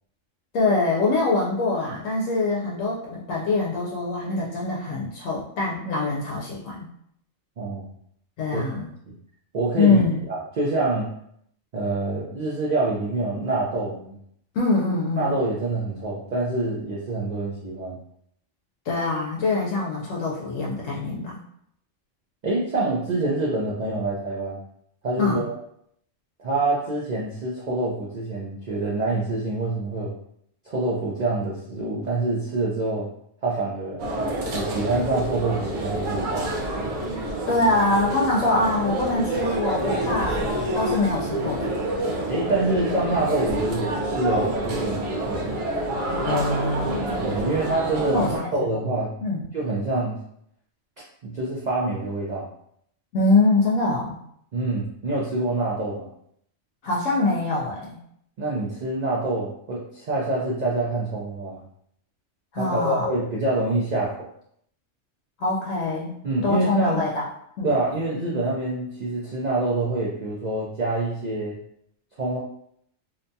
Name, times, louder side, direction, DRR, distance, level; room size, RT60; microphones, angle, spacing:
voice 1, 0.5-6.9 8.4-8.9 9.8-10.2 14.5-15.4 18.9-21.4 25.2-25.5 37.5-40.5 40.7-41.7 46.2-47.2 48.1-48.5 49.2-49.4 53.1-54.2 56.8-58.0 62.5-63.1 65.4-67.2 67.6-67.7, left 3 dB, 80° left, -3 dB, 0.9 m, -24 dB
voice 2, 7.6-7.9 8.5-8.6 9.1-9.2 9.5-10.0 10.3-11.1 11.7-14.2 15.2-18.0 22.4-24.6 25.0-25.6 26.4-30.1 30.7-33.1 33.4-34.0 34.5-36.5 42.3-45.5 47.2-49.2 49.5-50.2 51.2-52.5 54.5-56.1 58.4-61.6 62.6-64.3 66.2-67.0 67.6-71.6 72.2-72.4, right 2 dB, 65° right, -5 dB, 0.4 m, -26 dB
sound 1, 34.0-48.4, right 1 dB, 85° right, 1.1 m, -28 dB
2.7 x 2.2 x 2.6 m, 0.70 s
omnidirectional pair, 1.4 m